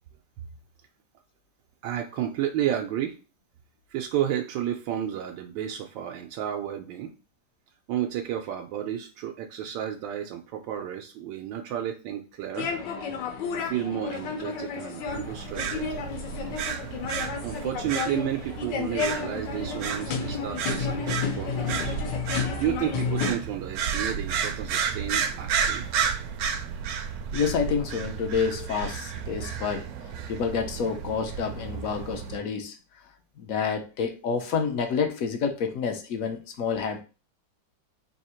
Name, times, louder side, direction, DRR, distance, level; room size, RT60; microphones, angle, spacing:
voice 1, 1.8-3.2 3.9-7.1 7.9-12.7 13.6-16.0 17.4-21.9 22.6-25.8, right 10 dB, 90° right, 3 dB, 1.3 m, -32 dB
sound 1, 12.5-23.3, left 6 dB, 90° left, 1.5 m, -32 dB
sound 2, 15.1-32.4, right 7 dB, 70° right, 0.9 m, -32 dB
voice 2, 27.3-29.9 30.3-32.8 33.4-37.0, left 6 dB, 65° left, 6 dB, 0.9 m, -28 dB
3.6 x 2.8 x 4.3 m, 0.32 s
omnidirectional pair, 1.9 m